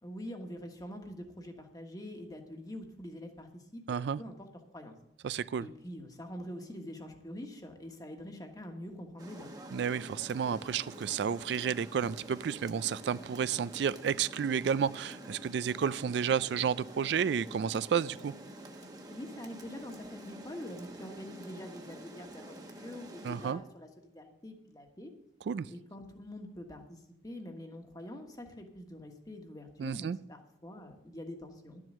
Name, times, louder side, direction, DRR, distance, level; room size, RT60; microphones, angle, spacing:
voice 1, 0.0-4.5 4.7-4.9 5.6-9.5 19.1-25.1 25.7-31.8, left 1 dB, 20° left, 4 dB, 1.4 m, -45 dB
voice 2, 3.9-4.2 5.2-5.7 9.7-18.3 23.2-23.6 25.5-25.7 29.8-30.2, right 7 dB, 70° right, 17 dB, 0.3 m, -31 dB
Rain, 9.2-23.5, right 1 dB, 20° right, 1.0 m, -48 dB
12.0 x 7.6 x 6.3 m, 0.79 s
head